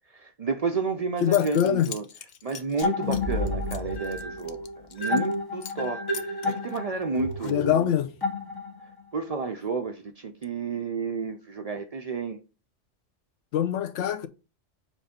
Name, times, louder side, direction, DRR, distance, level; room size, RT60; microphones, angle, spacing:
voice 1, 0.1-2.0 2.4-8.0 9.1-12.4, right 4 dB, 65° right, 0.3 m, -31 dB
Zipper (clothing) / Coin (dropping), 0.9-1.0 1.2-5.3 5.6-5.9 6.1-7.9, left 7 dB, 55° left, 0.5 m, -43 dB
voice 2, 1.2-1.9 7.5-8.1 13.5-14.3, left 10 dB, 75° left, 0.9 m, -23 dB
sound 1, 2.8-9.0, left 2 dB, 20° left, 1.3 m, -30 dB
7.1 x 2.6 x 5.0 m
omnidirectional pair, 1.3 m